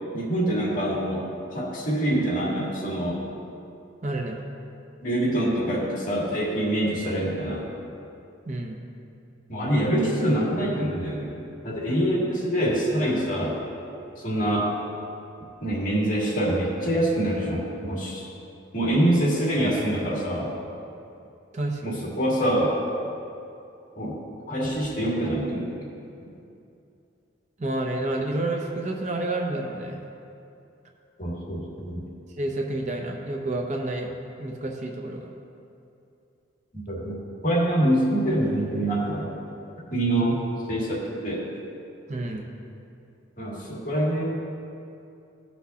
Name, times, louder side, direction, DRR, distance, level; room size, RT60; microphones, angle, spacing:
voice 1, 0.1-3.2 5.0-7.6 9.5-11.3 11.6-13.6 14.2-14.7 15.6-18.2 18.7-20.5 21.8-22.8 24.0-24.2 24.5-25.7 31.2-32.0 36.9-37.2 37.4-39.3 39.9-40.4 40.7-41.4 43.4-44.2, right 1 dB, 45° left, -5 dB, 2.3 m, -25 dB
voice 2, 4.0-4.4 8.5-8.8 21.5-22.0 27.6-30.0 32.4-34.1 34.4-35.2 42.1-42.5, right 2 dB, 40° right, 1 dB, 0.7 m, -29 dB
16.0 x 6.0 x 2.8 m, 2.7 s
head